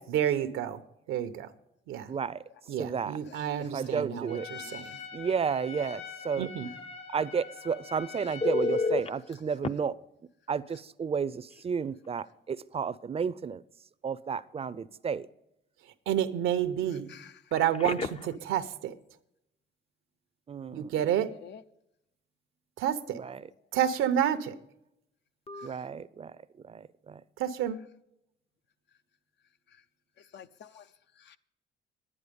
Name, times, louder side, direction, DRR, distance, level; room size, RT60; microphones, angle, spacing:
voice 1, 0.1-0.8 1.1-1.5 1.9-2.1 2.7-5.0 6.4-6.7 16.1-17.1 17.5-18.9 20.7-21.3 22.8-23.2 23.7-24.5 27.4-27.8, right 10 dB, 90° right, 0.9 m, -29 dB
voice 2, 2.0-3.2 3.6-4.5 5.1-6.5 7.1-10.0 10.5-13.6 14.0-15.3 20.5-20.9 23.1-23.5 25.6-27.2, right 6 dB, 30° right, 0.5 m, -32 dB
voice 3, 3.2-4.0 4.6-5.0 5.8-6.0 17.1-17.4 21.4-21.6 25.7-25.8 30.3-30.9 31.2-31.4, left 8 dB, 65° left, 0.7 m, -51 dB
Trumpet, 4.3-9.2, left 6 dB, 90° left, 4.1 m, -45 dB
Telephone, 8.4-9.1 9.6-9.7 11.5-11.6 12.0-12.2 17.5-18.4 25.5-25.7, left 3 dB, 30° left, 0.6 m, -30 dB
11.0 x 9.9 x 5.2 m
cardioid pair, 90°, 20 cm